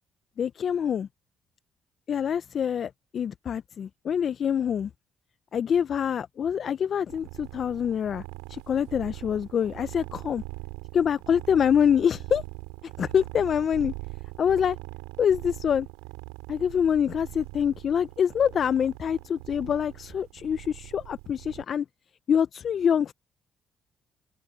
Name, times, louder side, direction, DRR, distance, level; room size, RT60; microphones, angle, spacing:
voice 1, 0.4-1.1 2.1-4.9 5.5-8.2 8.5-10.4 10.9-12.4 13.0-13.9 14.4-14.8 15.2-15.9 16.5-21.9 22.3-23.1, left 8 dB, 60° left, 0.8 m, -25 dB
sound 1, 7.1-21.6, right 26 dB, 85° right, 3.9 m, -42 dB
hypercardioid pair, 50°, 0 cm